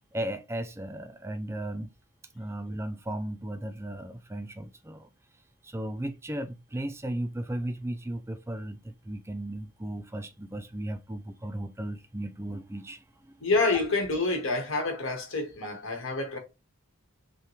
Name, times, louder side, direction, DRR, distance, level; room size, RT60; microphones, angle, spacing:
voice 1, 0.1-1.9 2.3-5.1 5.6-13.4, right 1 dB, 15° right, 0.4 m, -36 dB
voice 2, 13.4-16.4, left 3 dB, 80° left, 1.3 m, -27 dB
5.5 x 2.2 x 3.1 m
head